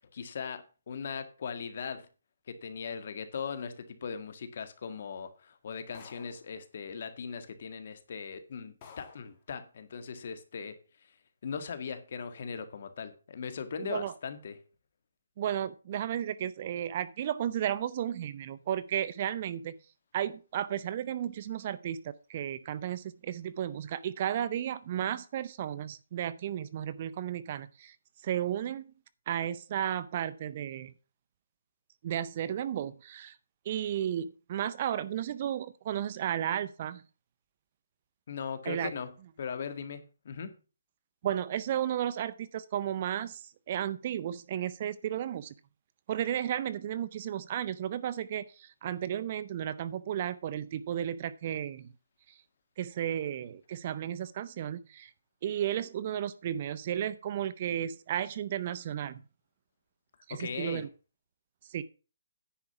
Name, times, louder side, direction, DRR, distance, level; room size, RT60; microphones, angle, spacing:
voice 1, 0.1-2.1 2.5-10.8 11.4-14.6 38.3-39.1 39.4-40.0 40.2-40.5 60.3-60.9, left 6 dB, 50° left, 1.6 m, -39 dB
sound 1, 5.9-6.5 7.5-7.6 8.2-8.3 8.8-9.3, left 6 dB, 25° left, 2.3 m, -52 dB
voice 2, 13.8-14.1 15.4-19.7 20.1-22.0 22.3-28.0 28.2-28.9 29.3-30.9 32.0-33.3 33.7-37.0 38.7-38.9 41.2-43.4 43.7-45.5 46.1-51.9 52.8-55.1 55.4-59.2 60.3-60.9 61.7-61.8, right 10 dB, 35° right, 0.5 m, -33 dB
10.0 x 4.8 x 6.9 m
hypercardioid pair, 165°, 0 cm